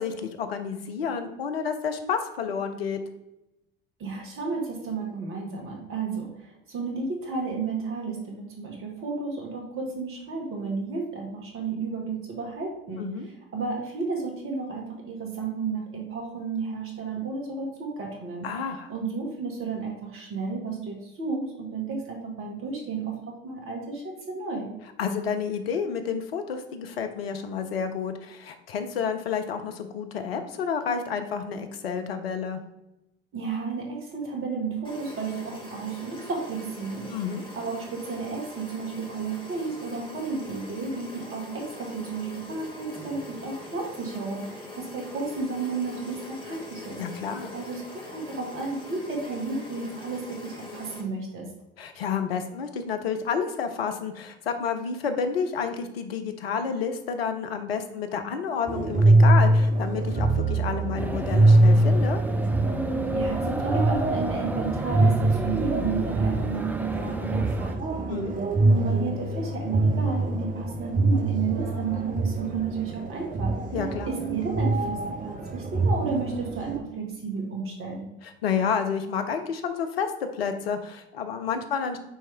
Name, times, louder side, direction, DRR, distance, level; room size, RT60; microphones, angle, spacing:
voice 1, 0.0-3.0 13.0-13.3 18.4-18.9 25.0-32.6 37.1-37.5 47.0-47.5 51.8-62.2 68.1-68.4 73.7-74.2 78.2-82.0, left 6 dB, 80° left, 7 dB, 0.7 m, -30 dB
voice 2, 4.0-6.3 6.7-13.1 13.5-18.5 18.9-24.7 33.3-37.1 37.5-47.0 47.5-51.4 63.1-68.1 68.6-73.5 74.0-75.0 75.2-78.0, right 4 dB, 45° right, 0 dB, 2.0 m, -32 dB
sound 1, 34.8-51.0, left 2 dB, 15° left, 1.6 m, -42 dB
sound 2, 58.7-76.8, right 2 dB, 25° right, 0.9 m, -24 dB
sound 3, 61.0-67.8, right 2 dB, 5° right, 0.5 m, -31 dB
8.9 x 3.2 x 3.4 m, 0.93 s
figure-of-eight pair, 60°, 30 cm